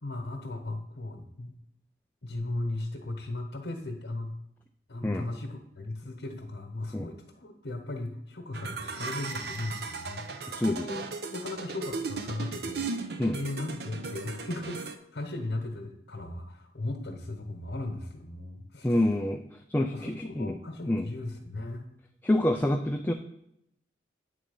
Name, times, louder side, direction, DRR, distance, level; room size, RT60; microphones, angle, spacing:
voice 1, 0.0-1.5 2.2-4.3 4.9-12.8 13.3-19.2 19.8-21.9, left 2 dB, 80° left, 3 dB, 1.0 m, -37 dB
sound 1, 8.5-14.9, right 4 dB, 65° right, 0.6 m, -37 dB
voice 2, 10.5-10.8 13.2-13.4 18.8-19.4 19.7-20.6 20.9-21.1 22.2-23.1, left 1 dB, 10° left, 4 dB, 0.3 m, -27 dB
8.4 x 3.8 x 5.3 m, 0.79 s
head